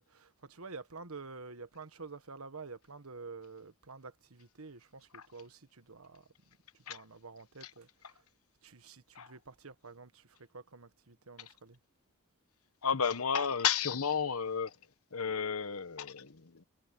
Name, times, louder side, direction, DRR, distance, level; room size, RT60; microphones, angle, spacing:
voice 1, 0.0-8.2 8.6-11.8, right 4 dB, 80° right, 1.5 m, -49 dB
voice 2, 12.8-14.8 15.1-16.6, left 7 dB, 90° left, 1.2 m, -32 dB
head